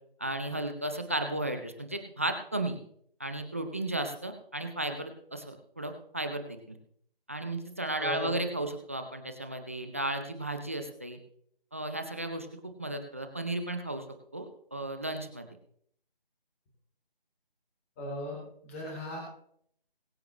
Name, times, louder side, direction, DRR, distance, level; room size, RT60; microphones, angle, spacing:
voice 1, 0.2-2.8 3.2-6.8 7.3-11.2 11.7-14.0 14.3-15.5, right 1 dB, 15° right, 6 dB, 0.7 m, -34 dB
voice 2, 8.0-8.3 18.0-19.2, left 1 dB, 15° left, -2 dB, 3.6 m, -37 dB
21.5 x 8.0 x 3.2 m, 0.65 s
figure-of-eight pair, 160°, 29 cm